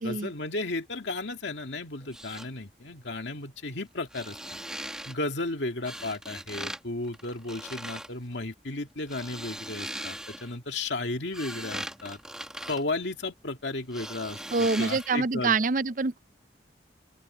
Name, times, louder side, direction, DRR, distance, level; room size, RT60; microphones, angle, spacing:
voice 1, 0.0-4.4 5.1-12.2 12.7-15.6, left 2 dB, 75° left, 2.2 m, -34 dB
sound 1, 2.0-2.5 4.0-5.2 5.8-6.8 7.1-8.1 8.9-10.6 11.1-13.5 13.9-15.2 15.5-15.6, right 1 dB, 5° right, 1.3 m, -39 dB
voice 2, 14.5-16.2, right 4 dB, 45° right, 0.5 m, -26 dB
open air
head